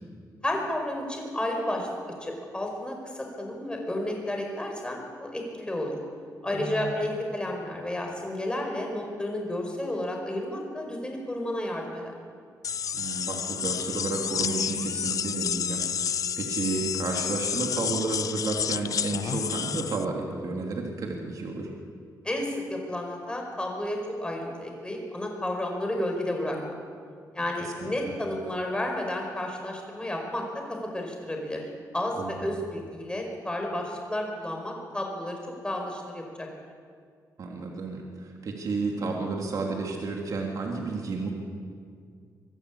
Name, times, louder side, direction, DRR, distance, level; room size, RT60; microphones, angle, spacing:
voice 1, 0.4-1.9 2.2-5.9 6.4-12.1 22.2-26.6 27.3-31.6 31.9-35.4 35.6-36.5, left 1 dB, 15° left, 1 dB, 5.1 m, -31 dB
voice 2, 6.5-7.0 12.9-21.7 27.6-27.9 32.2-32.4 37.4-41.3, right 3 dB, 60° right, 0 dB, 3.2 m, -32 dB
sound 1, 12.6-20.1, left 8 dB, 55° left, 0.5 m, -30 dB
24.0 x 13.0 x 8.6 m, 2.1 s
cardioid pair, 105°, 7 cm